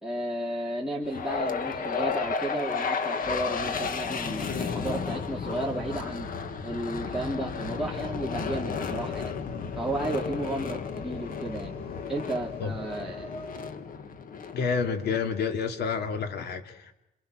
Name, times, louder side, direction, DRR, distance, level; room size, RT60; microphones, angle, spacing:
voice 1, 0.0-6.3 6.6-9.3 9.7-11.7 12.1-13.3, right 1 dB, 5° right, -4 dB, 2.8 m, -33 dB
sound 1, 1.1-15.3, left 5 dB, 50° left, 1.7 m, -33 dB
sound 2, 7.5-13.7, left 6 dB, 30° left, 2.0 m, -45 dB
voice 2, 14.5-16.9, left 5 dB, 70° left, 6 dB, 2.8 m, -29 dB
27.5 x 26.5 x 6.3 m, 0.86 s
cardioid pair, 140°, 18 cm